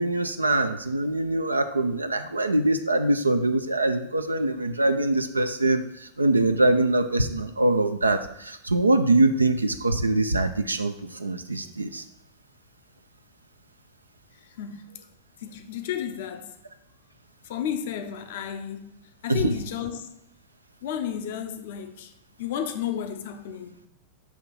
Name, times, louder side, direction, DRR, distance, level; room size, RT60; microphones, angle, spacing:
voice 1, 0.0-10.9 11.2-12.0 19.3-19.5, right 2 dB, 80° right, 0.3 m, -23 dB
voice 2, 14.6-15.0 15.4-16.5 17.4-18.9 19.2-20.1 20.8-22.1 22.4-23.8, left 9 dB, 55° left, 0.6 m, -32 dB
7.1 x 2.9 x 5.5 m
figure-of-eight pair, 90°, 0 cm